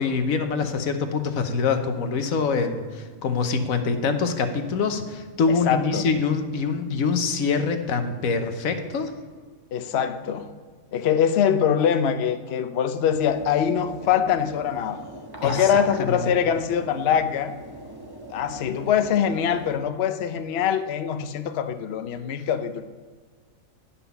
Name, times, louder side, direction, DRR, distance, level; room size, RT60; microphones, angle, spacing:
voice 1, 0.0-9.1 15.4-16.2, left 5 dB, 85° left, 7 dB, 1.3 m, -25 dB
voice 2, 5.7-6.1 9.7-10.5 10.9-15.0 15.4-17.5 18.3-22.8, left 8 dB, 60° left, 9 dB, 0.8 m, -23 dB
sound 1, 13.1-19.8, right 1 dB, 20° right, 0.9 m, -40 dB
10.0 x 5.6 x 6.9 m, 1.5 s
omnidirectional pair, 1.4 m